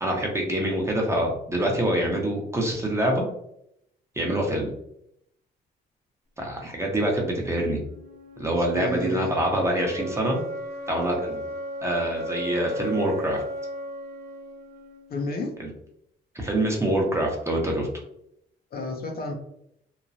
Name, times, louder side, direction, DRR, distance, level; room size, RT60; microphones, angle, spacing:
voice 1, 0.0-3.3 4.2-4.7 6.4-7.8 8.4-10.4 10.9-11.4 11.8-13.4 15.6-15.7 16.3-17.9, right 1 dB, 15° right, 0 dB, 0.8 m, -25 dB
sound 1, 7.5-15.5, equal, 55° right, 1.0 m, -36 dB
voice 2, 8.7-9.4 15.1-15.5 18.7-19.3, left 1 dB, 50° left, 2 dB, 0.6 m, -30 dB
3.0 x 2.2 x 2.6 m, 0.74 s
cardioid pair, 90°, 20 cm